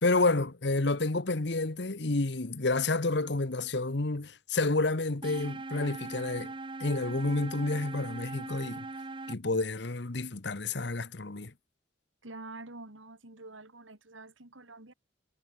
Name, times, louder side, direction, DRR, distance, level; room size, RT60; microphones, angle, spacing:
voice 1, 0.0-6.5 6.8-8.9 9.3-11.5, left 2 dB, 60° left, 1.2 m, -29 dB
sound 1, 5.2-9.3, right 2 dB, 25° right, 0.7 m, -40 dB
voice 2, 12.2-14.9, right 2 dB, 80° right, 3.4 m, -47 dB
head